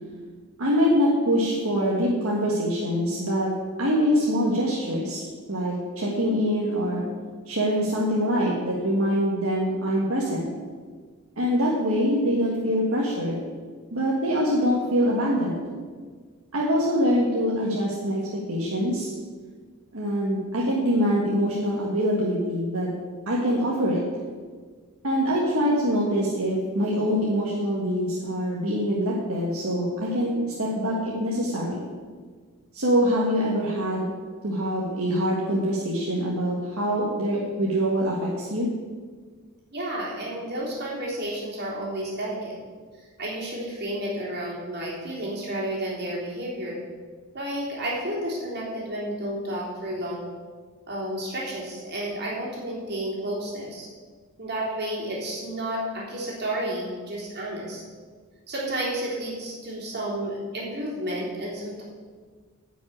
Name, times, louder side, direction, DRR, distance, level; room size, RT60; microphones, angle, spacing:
voice 1, 0.6-3.5 3.8-5.2 5.5-7.0 7.5-10.5 11.4-13.4 13.9-15.6 16.5-18.2 18.5-19.1 19.9-22.9 23.2-24.0 25.0-31.8 32.7-34.1 34.4-38.7, equal, 70° right, -4 dB, 1.7 m, -24 dB
voice 2, 39.7-42.5 43.2-46.8 47.3-50.3 50.9-53.9 54.4-57.8 58.5-61.8, right 1 dB, 50° right, -5 dB, 3.4 m, -31 dB
9.9 x 6.0 x 8.7 m, 1.5 s
head